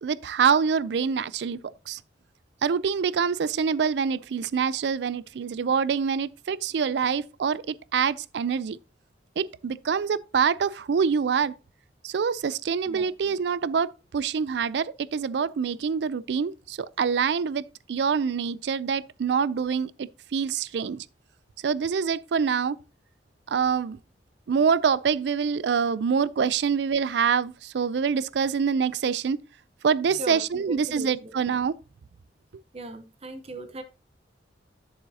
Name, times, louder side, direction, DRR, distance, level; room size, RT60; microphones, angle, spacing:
voice 1, 0.0-2.0 2.6-8.8 9.4-11.5 12.0-21.1 21.6-22.8 23.5-24.0 24.5-29.4 29.8-31.8, right 6 dB, 70° right, 0.4 m, -25 dB
voice 2, 30.7-31.3 32.7-33.8, right 1 dB, 35° right, 0.7 m, -38 dB
10.5 x 7.1 x 2.7 m
head